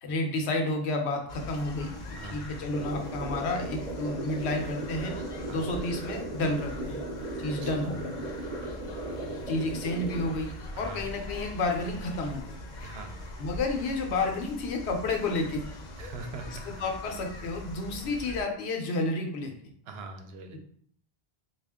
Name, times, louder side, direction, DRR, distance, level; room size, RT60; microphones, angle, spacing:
voice 1, 0.0-1.9 2.3-5.1 5.5-7.0 7.4-8.2 9.5-10.5 10.8-12.5 13.4-15.6 16.8-19.5, left 2 dB, 90° left, 2 dB, 1.0 m, -30 dB
sound 1, 1.3-18.4, left 1 dB, 55° left, 0.7 m, -42 dB
voice 2, 2.2-2.5 5.5-5.7 7.6-7.9 10.7-11.1 12.8-13.2 16.0-16.8 19.8-20.6, right 3 dB, 75° right, 5 dB, 0.8 m, -42 dB
sound 2, 2.7-10.2, right 2 dB, 50° right, 0.6 m, -37 dB
3.4 x 2.5 x 3.5 m, 0.63 s
omnidirectional pair, 1.1 m